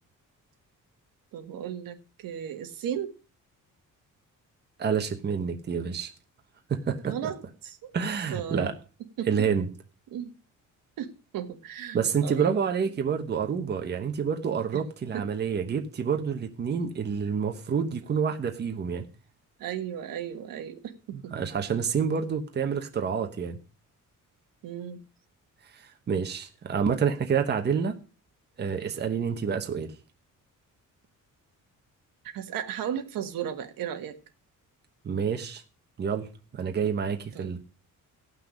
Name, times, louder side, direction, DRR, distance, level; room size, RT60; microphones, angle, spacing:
voice 1, 1.3-3.1 7.0-7.9 8.3-8.7 9.2-9.3 10.1-10.3 11.0-12.5 14.7-14.8 15.1-15.3 19.6-21.3 24.6-25.0 32.2-34.2 37.3-37.5, right 9 dB, 85° right, 1.5 m, -35 dB
voice 2, 4.8-6.1 6.7-7.1 7.9-8.7 9.3-9.7 11.9-19.1 21.1-23.6 25.7-28.0 28.6-29.9 35.0-35.6 36.0-37.6, right 6 dB, 30° right, 1.0 m, -28 dB
16.0 x 6.0 x 5.1 m
cardioid pair, 160°, 33 cm